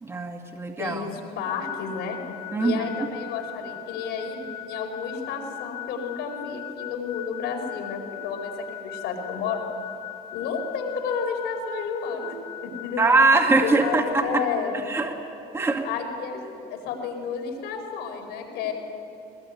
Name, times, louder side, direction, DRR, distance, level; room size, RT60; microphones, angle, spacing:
voice 1, 0.0-1.1 2.5-2.8 13.0-14.4 14.9-15.1 15.5-15.8, right 3 dB, 15° right, 2 dB, 2.0 m, -22 dB
voice 2, 0.8-2.2 2.6-9.6 10.3-12.4 12.6-13.0 13.6-14.9 15.8-18.7, left 6 dB, 85° left, 4 dB, 4.8 m, -31 dB
sound 1, 1.4-14.1, left 14 dB, 70° left, 2.1 m, -40 dB
22.0 x 21.5 x 9.5 m, 2.9 s
cardioid pair, 110°, 17 cm